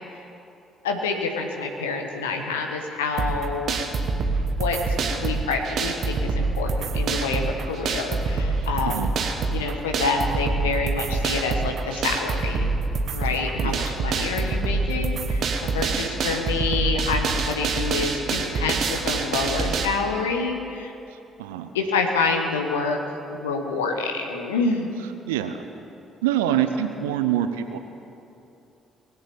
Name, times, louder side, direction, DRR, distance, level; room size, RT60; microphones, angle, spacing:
voice 1, 0.8-3.8 4.6-9.1 9.5-12.7 13.1-20.9 21.7-23.0 23.3-24.9, left 4 dB, 75° left, 3 dB, 1.1 m, -27 dB
sound 1, 3.2-19.8, right 4 dB, 50° right, 1.2 m, -26 dB
voice 2, 21.1-21.7 25.3-25.6 26.2-27.8, right 10 dB, 75° right, 9 dB, 0.6 m, -25 dB
19.5 x 8.2 x 7.0 m, 2.8 s
figure-of-eight pair, 45°, 0 cm